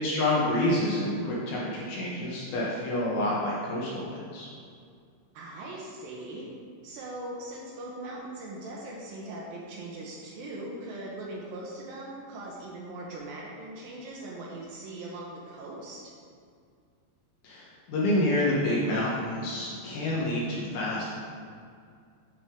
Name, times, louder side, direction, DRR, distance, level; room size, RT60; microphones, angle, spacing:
voice 1, 0.0-4.5 17.4-21.2, left 1 dB, 70° left, -6 dB, 2.5 m, -28 dB
voice 2, 5.3-6.5 6.8-16.0, right 2 dB, 80° right, -4 dB, 2.1 m, -40 dB
8.8 x 6.0 x 3.6 m, 2.3 s
omnidirectional pair, 5.3 m